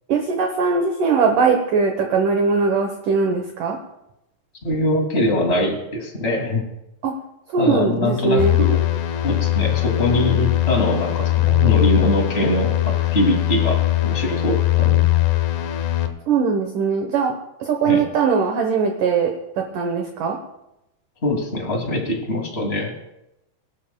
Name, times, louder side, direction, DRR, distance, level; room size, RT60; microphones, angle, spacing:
voice 1, 0.1-3.8 7.0-7.2 7.5-8.6 16.3-20.4, right 5 dB, 65° right, 3 dB, 2.2 m, -20 dB
voice 2, 4.6-6.6 7.6-8.8 9.2-15.1 17.8-18.0 21.2-22.9, left 1 dB, 20° left, 1 dB, 1.8 m, -22 dB
sound 1, 8.4-16.1, left 15 dB, 80° left, 1.7 m, -20 dB
23.0 x 12.5 x 2.3 m, 0.88 s
omnidirectional pair, 4.8 m